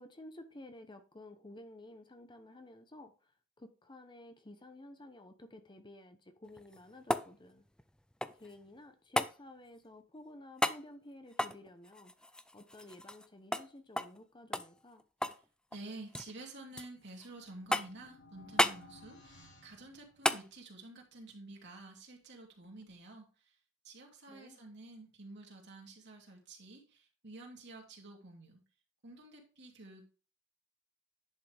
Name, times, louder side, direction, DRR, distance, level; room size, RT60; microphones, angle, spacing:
voice 1, 0.0-3.1 3.6-7.6 8.4-12.1 12.5-15.0 24.3-24.6, left 1 dB, 25° left, 0.9 m, -53 dB
sound 1, 6.5-8.6 9.2-9.4 10.6-10.8 11.3-13.3 13.5-13.7 14.0-14.2 14.5-15.4 15.7-16.3 16.8-17.3 17.7-18.1 18.6-18.8 20.2-20.5 22.8-22.9, left 1 dB, 5° left, 0.4 m, -34 dB
voice 2, 15.7-23.5 23.8-28.6 29.0-30.0, right 2 dB, 60° right, 2.8 m, -50 dB
sound 2, 16.9-20.7, left 2 dB, 60° left, 2.8 m, -59 dB
10.5 x 5.7 x 3.4 m
head